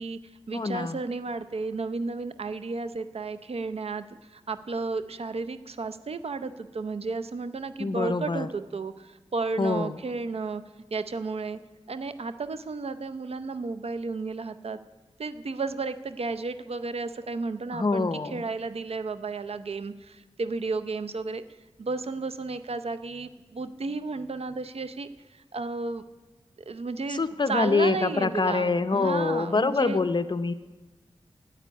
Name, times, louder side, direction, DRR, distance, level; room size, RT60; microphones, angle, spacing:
voice 1, 0.0-10.6 10.9-11.6 11.9-14.8 15.2-21.4 21.8-26.0 26.7-27.2 27.5-30.0, right 3 dB, 65° right, 11 dB, 0.6 m, -33 dB
voice 2, 0.5-1.0 7.8-8.5 9.6-10.0 17.7-18.4 27.1-30.5, left 3 dB, 45° left, 12 dB, 0.7 m, -25 dB
9.9 x 8.1 x 9.5 m, 1.2 s
wide cardioid pair, 60°, 11 cm